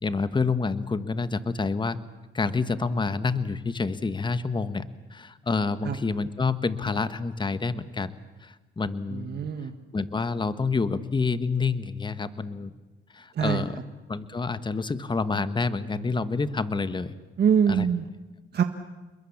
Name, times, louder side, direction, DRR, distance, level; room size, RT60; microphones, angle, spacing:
voice 1, 0.0-2.0 2.3-8.1 8.4-9.4 9.9-12.7 13.1-13.8 14.1-17.1 17.7-17.9, left 4 dB, 25° left, 12 dB, 1.4 m, -28 dB
voice 2, 9.1-9.8 13.3-13.6 17.4-18.1 18.5-18.6, right 7 dB, 55° right, 6 dB, 1.7 m, -24 dB
29.0 x 21.5 x 7.3 m, 1.2 s
cardioid pair, 90°, 20 cm